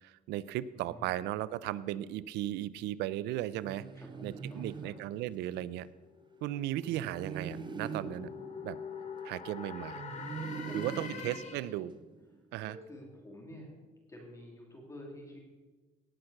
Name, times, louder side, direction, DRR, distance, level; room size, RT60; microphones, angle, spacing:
voice 1, 0.0-3.9 4.2-5.9 6.4-8.3 8.6-8.8 9.2-10.0 10.7-11.9 12.5-12.8, right 13 dB, 85° right, 18 dB, 0.5 m, -36 dB
voice 2, 0.7-1.2 3.9-4.9 9.8-10.3 10.6-11.3 12.7-13.7 14.1-15.4, left 1 dB, 20° left, -1 dB, 3.1 m, -49 dB
sound 1, 3.6-5.7 6.9-9.6 10.1-12.3, right 6 dB, 25° right, 0.7 m, -44 dB
sound 2, 5.7-11.9, left 6 dB, 40° left, 1.6 m, -45 dB
18.0 x 6.0 x 6.5 m, 1.3 s
cardioid pair, 110°, 17 cm